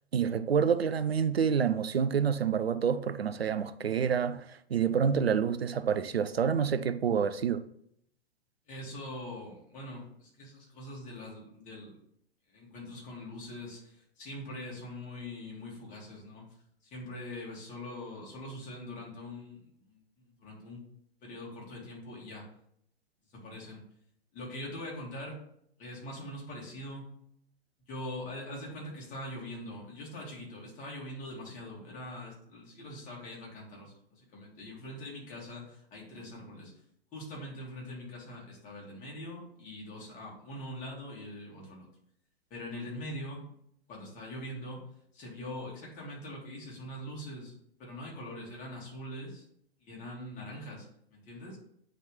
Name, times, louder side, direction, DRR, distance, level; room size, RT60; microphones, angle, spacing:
voice 1, 0.1-7.6, right 7 dB, 80° right, 0.5 m, -28 dB
voice 2, 8.7-11.9 12.5-16.5 16.8-20.8 21.2-22.5 23.3-23.8 24.3-25.4 25.8-27.1 27.9-36.7 37.1-41.9 42.5-43.5 43.9-44.8 45.1-47.5 47.8-49.4 49.8-51.6, left 1 dB, 25° left, 2.4 m, -43 dB
9.0 x 3.8 x 3.4 m
figure-of-eight pair, 105°, 30 cm